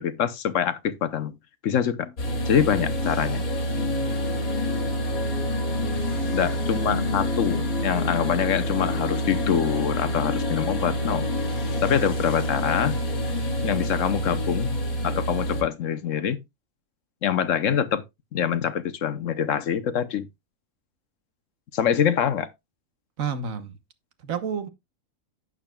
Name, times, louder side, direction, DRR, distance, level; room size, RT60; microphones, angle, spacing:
voice 1, 0.0-1.3 1.6-2.1 2.5-3.4 6.3-11.3 11.8-13.0 13.6-14.7 15.0-16.4 17.2-18.0 18.3-20.3 21.7-22.5, left 8 dB, 65° left, 1.2 m, -25 dB
sound 1, 2.2-15.6, left 1 dB, 90° left, 2.6 m, -27 dB
voice 2, 5.8-6.8 23.2-23.7 24.2-24.7, right 6 dB, 70° right, 1.5 m, -32 dB
11.5 x 8.7 x 2.3 m
omnidirectional pair, 1.5 m